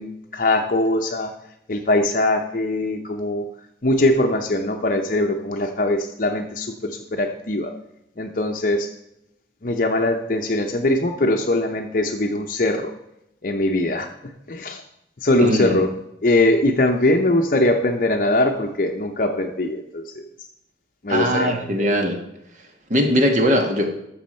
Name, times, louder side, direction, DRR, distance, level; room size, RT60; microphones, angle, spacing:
voice 1, 0.0-1.3 1.7-3.5 3.8-7.7 8.2-8.9 9.6-12.9 13.4-14.8 15.2-15.9 16.2-20.3 21.0-21.9, left 1 dB, 45° left, 4 dB, 0.7 m, -21 dB
voice 2, 15.4-15.8 21.1-22.2 22.9-23.9, equal, 40° right, 4 dB, 1.5 m, -20 dB
13.0 x 7.0 x 4.4 m, 0.84 s
head